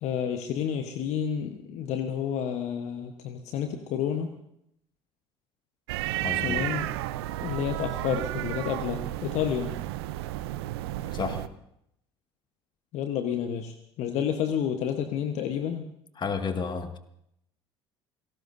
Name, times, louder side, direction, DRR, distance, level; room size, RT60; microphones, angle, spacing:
voice 1, 0.0-4.3 6.4-6.9 7.4-9.7 12.9-15.8, left 8 dB, 55° left, 7 dB, 1.2 m, -30 dB
sound 1, 5.9-11.5, right 15 dB, 75° right, 0.7 m, -32 dB
voice 2, 6.2-6.6 11.1-11.4 16.2-17.0, left 5 dB, 35° left, 7 dB, 1.9 m, -31 dB
28.5 x 17.5 x 2.7 m, 0.77 s
hypercardioid pair, 60°, 13 cm